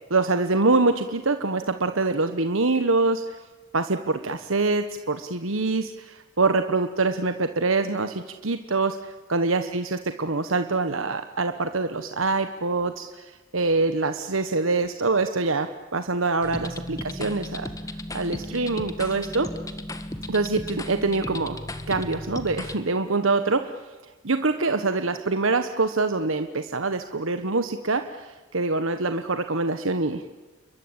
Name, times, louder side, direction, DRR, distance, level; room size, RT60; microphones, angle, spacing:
voice 1, 0.1-3.4 3.7-17.7 18.1-19.5 20.3-21.6 21.9-23.7 24.2-30.2, right 3 dB, 75° right, 9 dB, 1.3 m, -25 dB
sound 1, 16.4-22.8, left 1 dB, 15° left, 1.7 m, -35 dB
29.5 x 22.5 x 9.0 m, 1.2 s
head